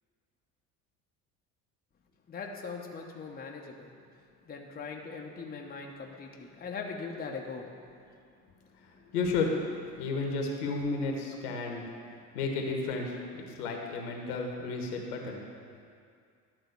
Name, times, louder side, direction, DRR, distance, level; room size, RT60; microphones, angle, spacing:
voice 1, 2.3-3.9 4.4-7.7 13.5-13.6, left 4 dB, 20° left, 0 dB, 0.9 m, -40 dB
voice 2, 9.1-9.5 10.0-11.8 12.3-15.4, left 3 dB, 70° left, 1 dB, 1.5 m, -32 dB
11.5 x 3.9 x 6.7 m, 2.3 s
hypercardioid pair, 70°, 46 cm